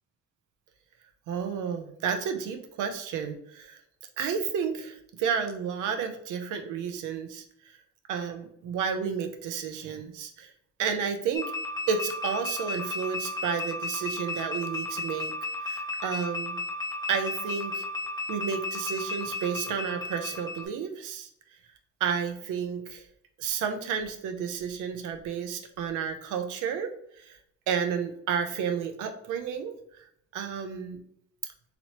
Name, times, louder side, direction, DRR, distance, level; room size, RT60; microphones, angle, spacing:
voice 1, 1.3-3.8 4.2-7.4 8.1-10.5 10.8-11.5 11.9-15.3 15.6-16.6 17.1-17.8 18.3-21.3 22.0-23.1 23.4-26.9 27.2-27.4 27.7-29.8 30.3-31.0, right 7 dB, 90° right, 7 dB, 0.6 m, -31 dB
sound 1, 11.3-20.7, left 2 dB, 15° left, 0.6 m, -34 dB
3.0 x 2.8 x 2.9 m, 0.69 s
cardioid pair, 90°, 30 cm